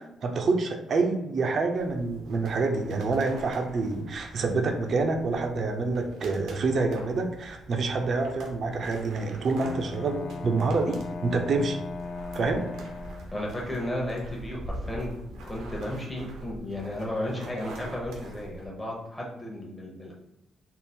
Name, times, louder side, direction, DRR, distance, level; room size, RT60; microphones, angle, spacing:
voice 1, 0.0-11.8 12.3-12.6, right 3 dB, 50° right, 4 dB, 0.6 m, -27 dB
sound 1, 1.7-18.7, right 1 dB, 85° right, 0.9 m, -44 dB
Bowed string instrument, 9.6-13.6, left 3 dB, 40° left, 0.4 m, -38 dB
voice 2, 13.3-15.1 15.4-20.1, left 1 dB, 10° left, -4 dB, 0.9 m, -34 dB
3.6 x 2.0 x 4.2 m, 0.87 s
cardioid pair, 90°, 0 cm